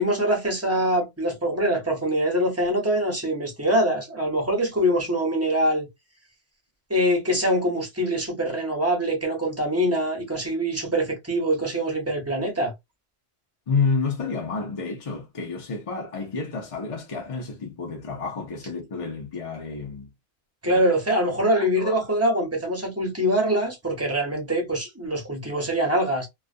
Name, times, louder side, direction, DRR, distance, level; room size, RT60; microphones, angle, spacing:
voice 1, 0.0-5.9 6.9-12.7 20.6-26.3, equal, 15° right, 0.9 m, -24 dB
voice 2, 13.7-20.1 20.6-20.8 21.5-22.0, left 4 dB, 35° left, 0.6 m, -29 dB
2.4 x 2.3 x 2.4 m
omnidirectional pair, 1.1 m